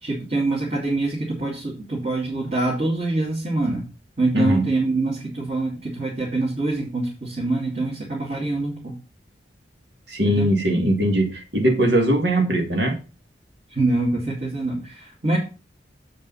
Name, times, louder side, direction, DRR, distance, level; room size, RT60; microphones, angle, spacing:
voice 1, 0.0-3.9 4.2-8.9 10.2-10.5 13.7-15.4, right 2 dB, 40° right, -4 dB, 2.3 m, -25 dB
voice 2, 4.3-4.7 10.1-13.0, right 1 dB, 75° right, 2 dB, 2.3 m, -20 dB
7.6 x 5.3 x 5.5 m, 0.33 s
head